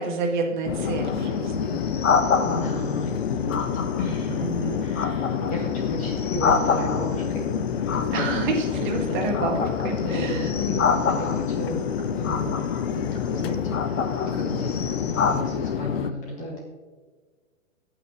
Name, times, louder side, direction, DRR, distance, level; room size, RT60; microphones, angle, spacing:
voice 1, 0.0-1.8 4.4-4.9 8.1-10.5, right 3 dB, 35° right, 2 dB, 1.8 m, -29 dB
Chatter / Fixed-wing aircraft airplane, 0.6-16.1, left 7 dB, 50° left, 0.6 m, -28 dB
sound 1, 0.7-2.9 3.5-4.2 4.6-7.3 7.9-9.0 9.3-11.7 12.2-12.9 13.5-15.4, left 5 dB, 70° left, 1.1 m, -27 dB
voice 2, 2.4-3.6 4.0-4.5 4.8-7.4 7.9-8.3 9.1-9.2 9.9-11.9 12.2-12.6 12.9-13.8 14.4-14.8 15.1-16.7, equal, 20° left, -2 dB, 1.8 m, -33 dB
17.0 x 5.9 x 3.0 m, 1.4 s
hypercardioid pair, 145°, 40 cm